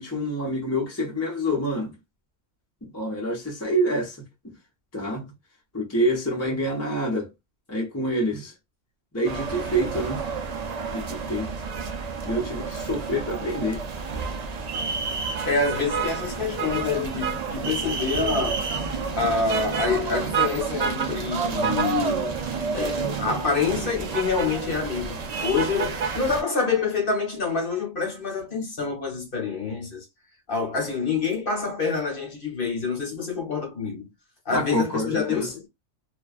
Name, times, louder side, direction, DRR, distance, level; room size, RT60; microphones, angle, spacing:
voice 1, 0.0-1.9 2.8-4.2 4.9-5.3 5.7-7.3 7.7-8.5 9.1-10.2 10.9-11.5 12.2-13.8 34.5-35.5, equal, 15° left, 0.7 m, -27 dB
sound 1, 9.2-26.4, right 5 dB, 55° right, 0.4 m, -29 dB
voice 2, 15.4-18.8 19.2-22.4 22.7-30.1 30.5-34.1 34.4-35.6, left 4 dB, 45° left, 1.2 m, -27 dB
2.5 x 2.3 x 2.3 m
omnidirectional pair, 1.3 m